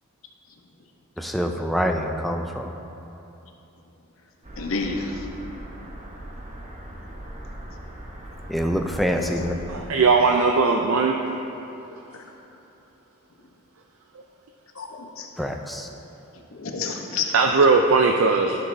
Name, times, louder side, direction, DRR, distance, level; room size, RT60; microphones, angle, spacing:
voice 1, 1.2-2.7 8.5-9.6 15.4-15.9, equal, ahead, 3 dB, 0.3 m, -25 dB
sound 1, 4.4-9.8, right 1 dB, 35° right, 0.8 m, -39 dB
voice 2, 4.6-5.3 14.8-15.3 16.5-17.3, left 4 dB, 70° left, 2 dB, 0.8 m, -29 dB
voice 3, 9.7-11.1 17.3-18.6, right 4 dB, 70° right, 2 dB, 0.4 m, -18 dB
13.0 x 6.1 x 2.6 m, 2.9 s
head